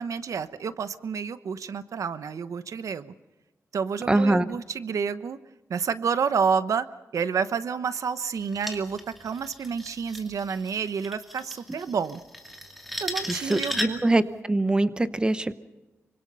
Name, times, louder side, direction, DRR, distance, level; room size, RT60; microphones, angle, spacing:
voice 1, 0.0-3.1 3.7-5.4 5.7-6.9 7.1-12.2 13.0-14.0, right 6 dB, 90° right, 13 dB, 1.0 m, -29 dB
voice 2, 4.1-4.4 13.3-14.2 14.5-15.5, right 2 dB, 15° right, 12 dB, 0.9 m, -23 dB
sound 1, 8.4-14.2, left 1 dB, ahead, 2.5 m, -36 dB
26.0 x 25.0 x 5.6 m, 1.1 s
wide cardioid pair, 165°, 5 cm